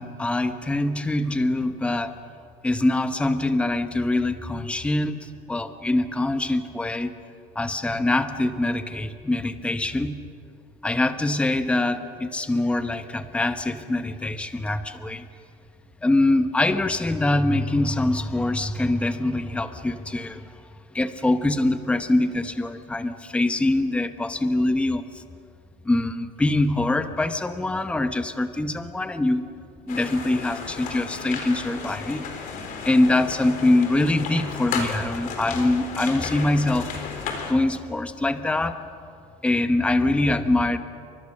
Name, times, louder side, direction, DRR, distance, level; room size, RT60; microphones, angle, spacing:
voice 1, 0.0-2.2 2.6-7.1 7.5-10.2 10.8-15.3 16.0-20.5 20.9-25.2 25.8-29.4 29.9-32.3 32.8-38.8 39.4-40.8, left 2 dB, 5° left, 9 dB, 1.0 m, -24 dB
sound 1, 29.9-37.5, left 5 dB, 50° left, 3.8 m, -34 dB
29.0 x 24.5 x 6.6 m, 2.4 s
cardioid pair, 160°, 18 cm